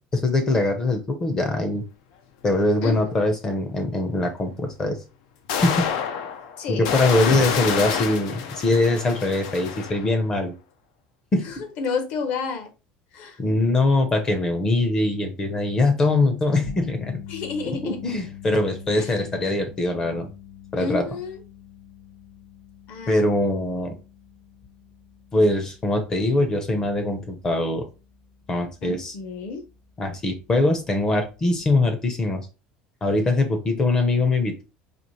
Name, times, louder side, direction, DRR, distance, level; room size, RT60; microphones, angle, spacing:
voice 1, 0.1-1.8 2.4-5.0 5.6-5.9 6.7-10.5 11.3-11.7 13.4-17.2 17.6-20.3 20.7-21.1 23.1-23.9 25.3-27.9 28.5-29.1 30.0-32.5 33.0-34.6, left 2 dB, 20° left, 7 dB, 0.6 m, -22 dB
sound 1, 2.8-2.9 4.7-4.8 5.5-10.2, left 7 dB, 90° left, 0.6 m, -28 dB
voice 2, 2.8-3.2 6.6-7.4 11.5-12.7 13.1-13.4 17.3-18.0 18.9-19.1 20.8-21.4 22.9-23.4 28.8-29.6, left 5 dB, 50° left, 7 dB, 0.8 m, -30 dB
sound 2, 16.6-28.9 29.2-29.5 31.7-31.8, left 9 dB, 70° left, 2.2 m, -44 dB
4.2 x 2.9 x 3.0 m, 0.30 s
cardioid pair, 180°, 3 cm